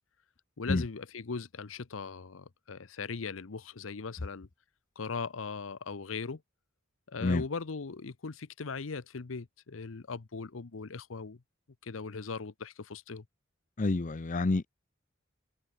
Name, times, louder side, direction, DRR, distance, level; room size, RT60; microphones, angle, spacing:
voice 1, 0.6-4.5 5.0-6.4 7.1-11.4 11.8-13.2, left 4 dB, 75° left, 0.8 m, -39 dB
voice 2, 13.8-14.7, left 2 dB, 40° left, 0.6 m, -28 dB
open air
head